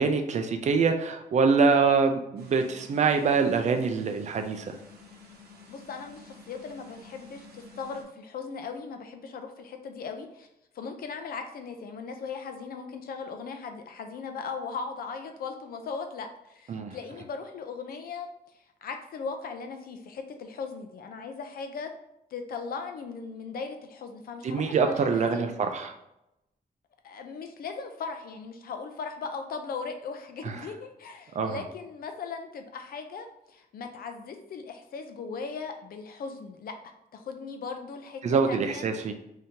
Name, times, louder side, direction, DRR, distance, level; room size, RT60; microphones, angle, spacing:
voice 1, 0.0-4.7 16.7-17.0 24.4-25.9 30.4-30.6 31.4-31.6 38.2-39.1, right 5 dB, 50° right, 6 dB, 0.4 m, -25 dB
sound 1, 2.4-8.0, left 2 dB, 90° right, 0.8 m, -51 dB
voice 2, 5.7-10.5 10.8-18.3 18.8-21.9 22.3-25.5 27.0-36.7 37.1-38.8, left 5 dB, 70° left, 5 dB, 0.5 m, -38 dB
3.5 x 2.7 x 2.8 m, 0.86 s
wide cardioid pair, 145°, 16 cm